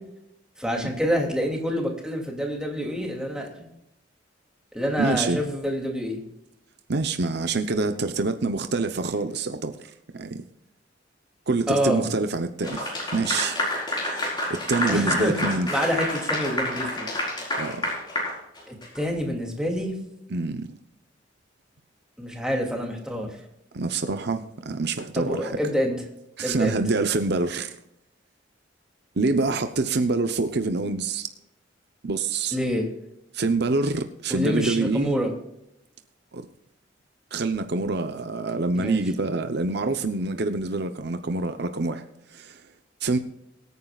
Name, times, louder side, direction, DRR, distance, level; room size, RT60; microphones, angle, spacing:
voice 1, 0.6-3.7 4.7-6.2 11.7-12.0 14.9-15.4 15.7-17.1 18.7-20.0 22.2-23.4 25.1-26.0 26.4-26.8 32.5-32.9 34.3-35.3 38.8-39.0, equal, 5° right, 2.7 m, -27 dB
voice 2, 5.0-5.4 6.9-10.4 11.5-13.6 14.0-15.7 17.5-17.9 20.3-20.8 23.7-25.6 26.4-27.8 29.2-31.3 32.0-32.6 33.3-35.1 36.3-36.5 37.3-42.0 42.3-42.6 43.0-43.2, right 3 dB, 60° right, 0.8 m, -26 dB
Clapping / Applause, 12.6-19.0, left 1 dB, 25° left, 4.8 m, -28 dB
23.0 x 9.5 x 2.4 m
head